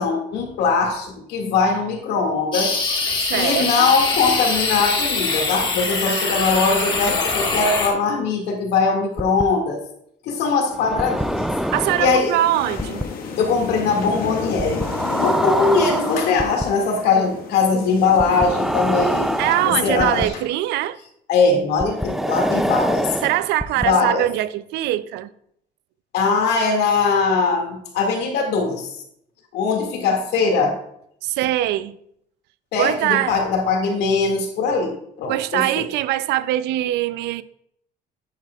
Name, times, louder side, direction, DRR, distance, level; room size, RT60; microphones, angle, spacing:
voice 1, 0.0-3.0 3.3-9.8 10.2-11.5 12.0-12.3 13.4-14.9 15.2-19.4 19.7-20.4 21.3-23.1 23.8-24.3 26.1-28.9 29.5-30.8 32.7-35.9, left 4 dB, 80° left, 2.1 m, -21 dB
sound 1, 2.5-7.9, left 3 dB, 30° left, 1.7 m, -23 dB
voice 2, 3.3-3.9 6.1-7.0 11.7-13.1 19.4-21.0 23.2-25.3 31.2-32.0 32.8-33.4 35.3-37.4, right 14 dB, 85° right, 0.5 m, -23 dB
sound 2, 9.2-9.4 10.7-12.3 12.8-13.0 14.6-16.6 18.2-20.3 21.8-23.9, equal, ahead, 0.4 m, -24 dB
sound 3, 11.2-20.3, left 5 dB, 60° left, 1.5 m, -32 dB
9.4 x 9.0 x 2.4 m
cardioid pair, 110°, 17 cm